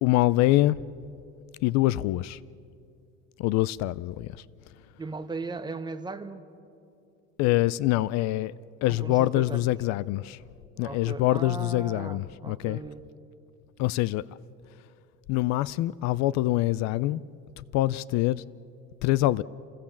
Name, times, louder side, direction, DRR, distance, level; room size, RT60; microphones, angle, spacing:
voice 1, 0.0-0.8 1.6-2.4 3.4-4.4 7.4-8.5 8.8-10.4 10.8-12.8 13.8-14.2 15.3-17.2 17.6-18.4 19.0-19.4, left 16 dB, 60° left, 0.5 m, -25 dB
voice 2, 5.0-6.4 8.9-9.8 10.8-13.0, right 3 dB, 15° right, 1.0 m, -37 dB
28.0 x 17.5 x 7.2 m
cardioid pair, 145°, 31 cm